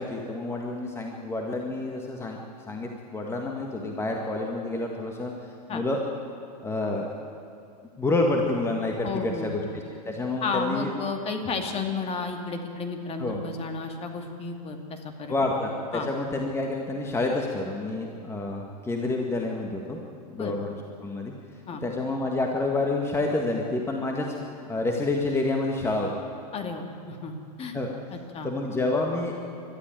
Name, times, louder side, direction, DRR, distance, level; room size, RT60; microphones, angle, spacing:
voice 1, 0.0-2.4 2.7-5.3 5.7-6.0 6.6-7.1 8.0-10.9 13.2-13.4 15.3-20.7 21.0-21.3 21.8-24.3 24.7-26.1 27.7-27.9 28.4-29.3, left 2 dB, 10° left, 1 dB, 1.9 m, -28 dB
voice 2, 9.0-9.5 10.4-15.6 15.9-16.1 20.4-20.5 21.7-21.8 26.5-27.8 28.1-28.5, left 4 dB, 30° left, 4 dB, 2.5 m, -33 dB
21.5 x 13.0 x 9.2 m, 2.6 s
hypercardioid pair, 110°, 21 cm